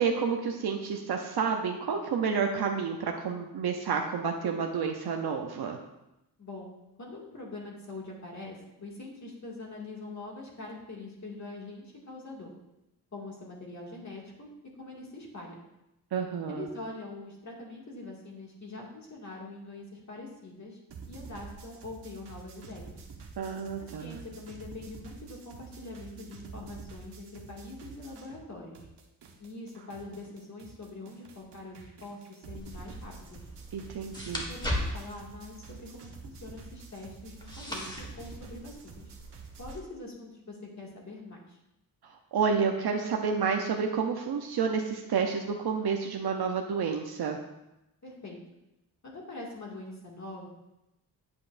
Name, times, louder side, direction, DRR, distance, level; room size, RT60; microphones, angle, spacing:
voice 1, 0.0-5.8 16.1-16.7 23.4-24.2 33.7-34.5 42.3-47.4, right 6 dB, 70° right, 3 dB, 0.8 m, -30 dB
voice 2, 6.4-6.7 7.0-12.5 13.1-14.5 14.8-15.6 16.5-20.8 21.0-23.0 23.8-28.8 29.4-33.4 34.5-39.1 39.6-41.6 48.0-48.4 49.0-50.5, left 2 dB, 45° left, -2 dB, 2.2 m, -44 dB
sound 1, 20.9-28.5 28.7-39.8, right 5 dB, 90° right, 1.1 m, -48 dB
sound 2, 32.6-39.7, equal, 10° left, 1.6 m, -39 dB
8.8 x 8.3 x 2.6 m, 0.92 s
wide cardioid pair, 95°, 39 cm